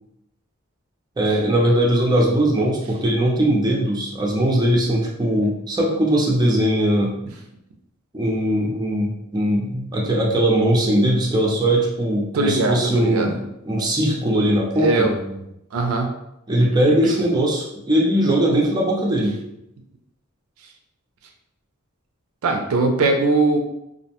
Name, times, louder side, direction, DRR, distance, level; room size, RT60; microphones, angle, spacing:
voice 1, 1.2-7.2 8.1-15.1 16.5-19.4, right 1 dB, 20° right, -3 dB, 0.5 m, -20 dB
voice 2, 12.3-13.4 14.8-15.3 15.7-16.1 22.4-23.6, right 3 dB, 75° right, 4 dB, 0.4 m, -20 dB
2.6 x 2.1 x 2.8 m, 0.82 s
head